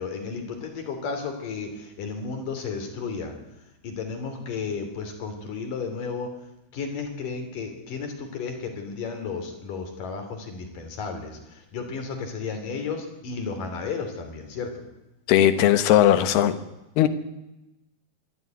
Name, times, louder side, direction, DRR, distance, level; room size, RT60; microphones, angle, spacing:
voice 1, 0.0-3.4 3.8-6.3 6.7-14.9, left 5 dB, 55° left, 5 dB, 4.4 m, -33 dB
voice 2, 15.3-16.6 17.0-17.1, left 11 dB, 80° left, 11 dB, 3.2 m, -18 dB
21.5 x 13.0 x 9.6 m, 0.94 s
omnidirectional pair, 4.6 m